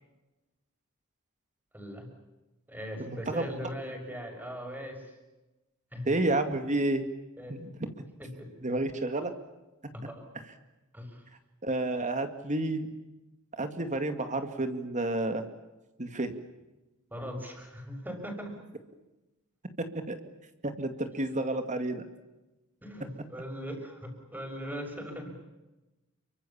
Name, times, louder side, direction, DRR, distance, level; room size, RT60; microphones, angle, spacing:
voice 1, 1.7-2.1 2.7-5.1 5.9-6.1 7.4-7.6 8.2-8.5 9.9-10.2 10.9-11.2 17.1-18.5 22.8-25.4, equal, 10° right, 4 dB, 6.4 m, -39 dB
voice 2, 3.0-3.4 6.1-7.0 7.5-7.9 8.6-9.3 11.6-12.9 13.5-15.5 16.0-16.3 19.8-20.2 20.6-22.0, right 2 dB, 35° right, 8 dB, 2.2 m, -30 dB
29.5 x 24.0 x 7.3 m, 1.0 s
head